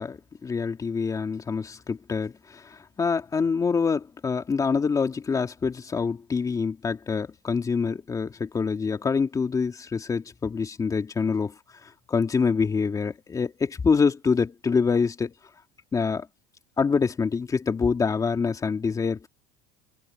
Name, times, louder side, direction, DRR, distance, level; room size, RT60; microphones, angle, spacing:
voice 1, 0.0-11.5 11.8-15.3 15.9-16.3 16.8-19.3, left 5 dB, 20° left, 3.0 m, -26 dB
cardioid pair, 155°, 19 cm